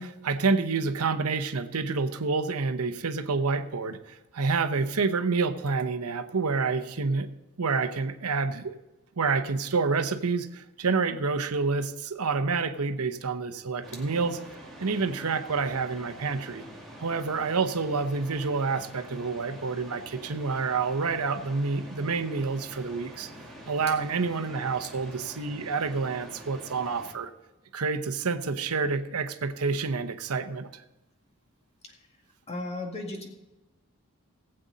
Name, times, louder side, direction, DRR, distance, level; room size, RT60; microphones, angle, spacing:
voice 1, 0.0-7.3 7.6-8.7 9.2-14.4 14.8-16.6 17.0-23.3 23.7-27.3 27.7-30.8, right 4 dB, 90° right, 9 dB, 0.8 m, -28 dB
sound 1, 13.8-27.1, equal, ahead, 2.1 m, -46 dB
voice 2, 32.5-33.3, left 2 dB, 30° left, 1 dB, 2.0 m, -35 dB
19.0 x 7.8 x 4.0 m, 1.0 s
head